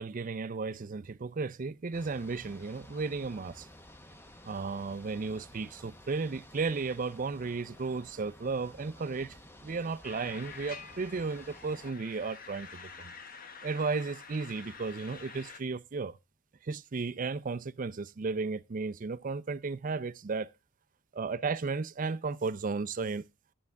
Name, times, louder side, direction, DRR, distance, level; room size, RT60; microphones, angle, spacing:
voice 1, 0.0-3.7 4.4-13.1 13.6-16.2 16.6-20.5 21.1-23.2, right 4 dB, 40° right, 0.5 m, -34 dB
sound 1, 1.9-11.9, left 1 dB, 10° left, 0.8 m, -53 dB
sound 2, 10.0-15.6, left 5 dB, 45° left, 0.9 m, -48 dB
11.0 x 11.0 x 3.4 m
head